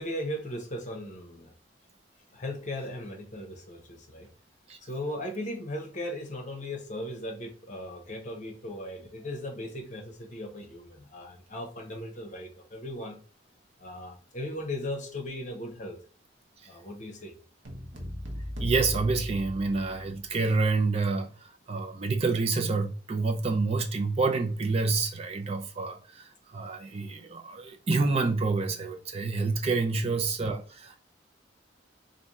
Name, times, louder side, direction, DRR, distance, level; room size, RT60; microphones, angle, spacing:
voice 1, 0.0-1.5 2.3-4.3 4.8-13.2 13.8-16.0 16.7-17.3 29.9-30.2, left 1 dB, 40° left, 1.0 m, -37 dB
sound 1, 17.6-20.2, left 1 dB, 80° right, 1.0 m, -36 dB
voice 2, 18.6-31.0, right 3 dB, 30° right, 0.4 m, -28 dB
3.4 x 2.6 x 4.2 m
head